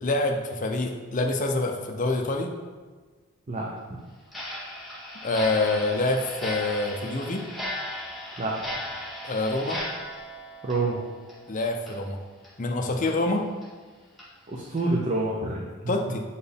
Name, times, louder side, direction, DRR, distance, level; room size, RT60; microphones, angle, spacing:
voice 1, 0.0-2.5 5.2-7.4 9.2-9.8 11.5-12.2 12.6-13.4 15.9-16.2, left 2 dB, 35° left, 3 dB, 0.6 m, -26 dB
Clock, 4.3-11.5 11.8-11.9 12.4-12.5 13.0-13.1 13.6-13.7 14.2-14.3 14.8-14.9, left 1 dB, ahead, 1.1 m, -36 dB
voice 2, 10.6-11.0 14.5-15.7, right 2 dB, 30° right, -2 dB, 0.6 m, -27 dB
7.0 x 4.5 x 3.4 m, 1.4 s
head